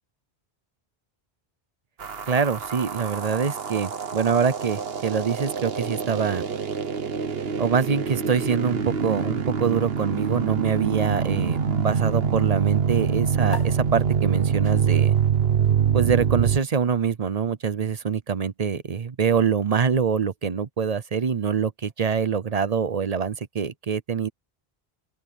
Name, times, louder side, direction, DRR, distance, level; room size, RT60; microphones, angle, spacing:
sound 1, 2.0-16.6, right 7 dB, 70° right, 1.4 m, -25 dB
voice 1, 2.3-6.5 7.6-15.2 15.9-24.3, right 6 dB, 45° right, 0.7 m, -25 dB
sound 2, 13.5-20.3, left 5 dB, 30° left, 3.9 m, -47 dB
open air
omnidirectional pair, 1.1 m